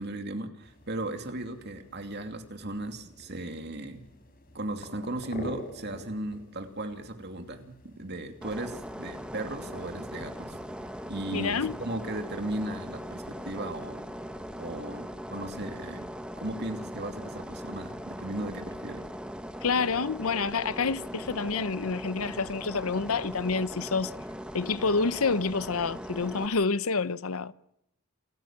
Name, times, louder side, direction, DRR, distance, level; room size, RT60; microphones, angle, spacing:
voice 1, 0.0-4.0 4.5-10.6 11.0-14.1 14.6-16.1 16.4-19.0, right 1 dB, 50° right, 2.7 m, -36 dB
sound 1, 0.6-13.5, equal, 40° left, 4.4 m, -49 dB
sound 2, 8.4-26.5, equal, 5° right, 1.3 m, -40 dB
voice 2, 11.3-11.8 19.6-24.1 24.5-27.5, left 4 dB, 75° left, 0.8 m, -28 dB
28.0 x 15.0 x 7.4 m
head